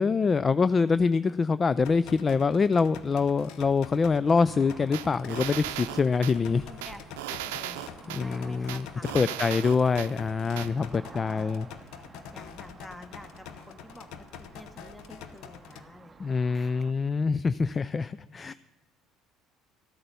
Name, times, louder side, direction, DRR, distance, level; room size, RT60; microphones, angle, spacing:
voice 1, 0.0-6.6 8.1-8.9 9.1-11.7 16.2-18.5, left 5 dB, 35° left, 17 dB, 0.3 m, -25 dB
sound 1, 1.8-15.8, left 8 dB, 70° left, 0.7 m, -46 dB
sound 2, 4.5-16.9, right 4 dB, 30° right, 0.7 m, -52 dB
sound 3, 4.9-6.4 6.8-8.2 8.7-10.1 10.6-10.7, right 14 dB, 85° right, 0.6 m, -36 dB
voice 2, 6.5-7.8 8.1-9.3 10.4-11.5 12.3-16.7 18.0-18.1, left 1 dB, 15° left, 9 dB, 1.5 m, -49 dB
13.5 x 8.7 x 6.9 m, 1.2 s
hypercardioid pair, 70°, 0 cm